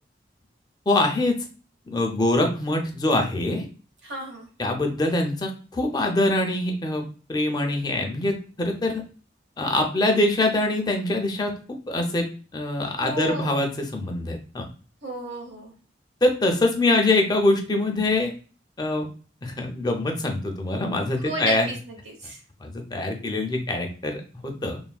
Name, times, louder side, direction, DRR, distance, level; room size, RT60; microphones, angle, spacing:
voice 1, 0.9-1.4 1.9-3.7 4.6-9.0 9.6-11.5 11.9-12.3 12.5-14.7 16.2-18.3 18.8-19.1 19.4-21.7 22.6-24.8, left 2 dB, 25° left, 3 dB, 0.4 m, -24 dB
voice 2, 4.0-4.5 13.0-13.6 15.0-15.7 21.2-21.7 22.0-22.4, right 1 dB, 85° right, 0 dB, 1.1 m, -33 dB
3.3 x 2.1 x 2.2 m, 0.37 s
head